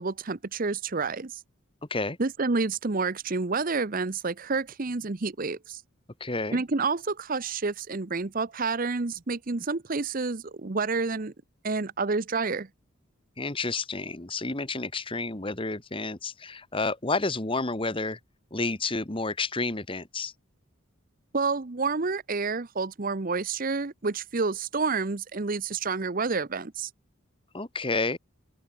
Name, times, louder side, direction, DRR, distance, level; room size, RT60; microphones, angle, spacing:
voice 1, 0.0-1.4 2.2-5.8 6.5-11.3 11.6-12.7 21.3-26.9, right 4 dB, 40° right, 0.8 m, -29 dB
voice 2, 6.2-6.6 13.4-18.2 18.5-20.3 27.5-28.2, left 3 dB, 25° left, 1.5 m, -30 dB
open air
head